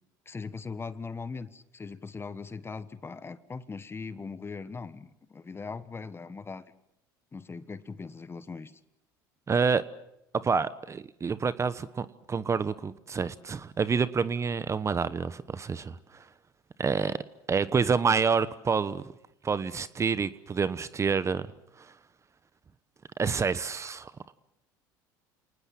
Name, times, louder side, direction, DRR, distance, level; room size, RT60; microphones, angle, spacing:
voice 1, 0.2-6.7 7.3-8.7, left 4 dB, 25° left, 1.3 m, -40 dB
voice 2, 9.5-9.8 10.4-16.2 16.8-17.1 17.5-19.0 19.4-21.5 21.8-21.9 23.2-24.3, right 5 dB, 30° right, 1.1 m, -28 dB
29.0 x 19.5 x 7.5 m
hypercardioid pair, 80°, 10 cm